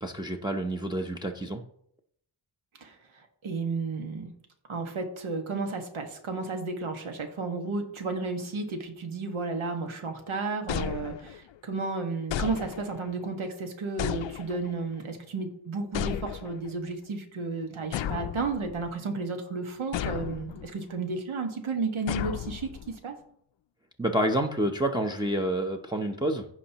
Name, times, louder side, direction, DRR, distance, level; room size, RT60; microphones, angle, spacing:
voice 1, 0.0-1.6 24.0-26.5, right 1 dB, 10° right, 1 dB, 0.7 m, -28 dB
voice 2, 3.4-4.3 4.7-22.7 23.0-23.1, right 3 dB, 90° right, 4 dB, 1.6 m, -33 dB
sound 1, 10.7-11.6 12.3-13.1 14.0-14.8 15.9-16.7 17.9-18.9 19.9-20.7 22.1-23.0, left 10 dB, 70° left, 0.5 m, -34 dB
15.5 x 5.3 x 2.9 m, 0.68 s
wide cardioid pair, 120°, 47 cm